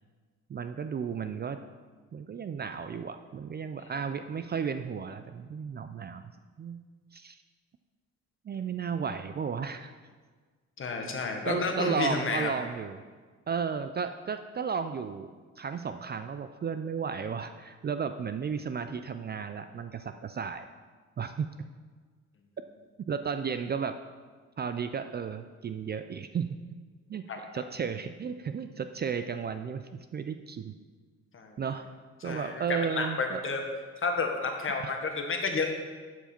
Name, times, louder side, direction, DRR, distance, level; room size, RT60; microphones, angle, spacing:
voice 1, 0.5-1.6 2.1-6.2 6.6-6.8 7.1-7.4 8.4-9.9 11.4-13.0 13.5-15.3 15.6-20.7 21.2-21.5 23.1-23.9 24.6-26.6 27.1-30.7 31.6-31.8 32.2-33.4 34.8-34.9, right 6 dB, 35° right, 9 dB, 0.4 m, -34 dB
voice 2, 10.8-12.5 27.3-27.4 31.3-31.5 32.2-32.6 32.9-33.6 34.0-35.7, left 4 dB, 45° left, 3 dB, 1.4 m, -31 dB
12.0 x 4.7 x 4.4 m, 1.5 s
cardioid pair, 90°, 30 cm